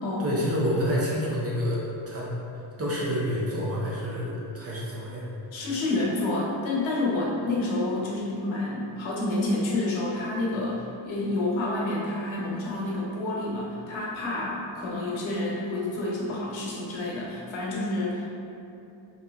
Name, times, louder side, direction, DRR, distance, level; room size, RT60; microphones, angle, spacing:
voice 1, 0.2-2.3 2.8-5.3, equal, 30° right, -6 dB, 0.5 m, -28 dB
voice 2, 5.5-18.3, left 2 dB, 70° left, -4 dB, 0.8 m, -29 dB
2.7 x 2.3 x 3.3 m, 2.7 s
cardioid pair, 135°, 48 cm